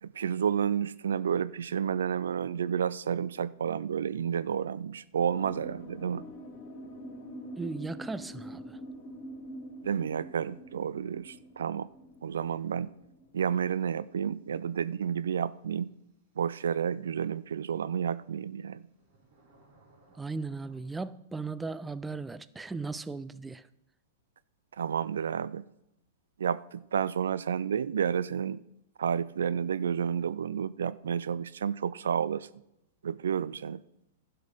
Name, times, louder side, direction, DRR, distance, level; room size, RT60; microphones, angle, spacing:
voice 1, 0.0-6.3 9.8-11.9 12.2-12.9 13.3-15.9 16.4-18.8 24.8-25.6 26.4-28.6 29.0-32.5 33.0-33.8, right 8 dB, 80° right, 18 dB, 0.4 m, -30 dB
sound 1, 5.3-14.6, equal, 45° left, 2.4 m, -46 dB
voice 2, 7.6-8.8 20.2-23.7, right 3 dB, 10° right, 16 dB, 0.4 m, -37 dB
sound 2, 16.1-16.2 18.2-20.8, right 2 dB, 55° right, 3.7 m, -63 dB
12.0 x 5.6 x 6.5 m, 0.83 s
hypercardioid pair, 110°, 0 cm